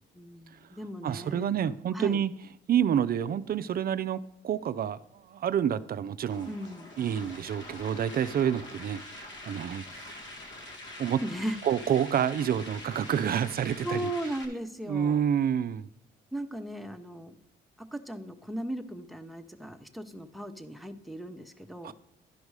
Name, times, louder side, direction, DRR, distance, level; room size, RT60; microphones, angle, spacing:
voice 1, 0.1-2.2 6.5-6.9 11.2-11.6 13.8-15.2 16.3-17.4 17.9-21.9, right 1 dB, ahead, 0.8 m, -37 dB
voice 2, 1.0-2.3 2.7-6.6 7.0-10.1 11.0-11.2 11.6-14.1 14.9-15.9 21.8-21.9, right 9 dB, 50° right, 0.4 m, -28 dB
sound 1, 6.3-14.4, left 1 dB, 65° left, 1.6 m, -45 dB
12.0 x 5.2 x 4.8 m
cardioid pair, 90°, 20 cm